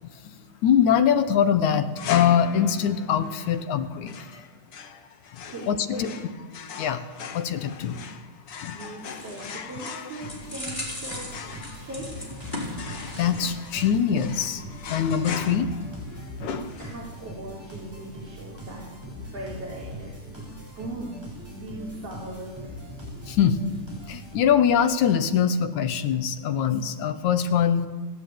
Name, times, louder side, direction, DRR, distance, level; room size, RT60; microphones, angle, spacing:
voice 1, 0.6-4.1 5.7-6.1 6.8-7.0 7.3-8.0 8.6-8.8 13.1-14.6 14.9-15.7 23.3-23.6 24.1-27.9, left 8 dB, 75° left, 10 dB, 2.5 m, -23 dB
sound 1, 2.0-17.3, left 5 dB, 55° left, 2.1 m, -40 dB
voice 2, 5.5-6.2 7.8-8.0 8.6-12.4 16.8-18.9 19.2-20.5 20.7-21.2 21.5-22.7, right 1 dB, 50° right, -4 dB, 4.9 m, -39 dB
sound 2, 8.9-13.5 13.8-14.0, left 1 dB, 15° left, 3.9 m, -38 dB
sound 3, 10.2-24.8, equal, 5° right, 7.2 m, -41 dB
30.0 x 11.5 x 9.2 m, 1.3 s
omnidirectional pair, 3.5 m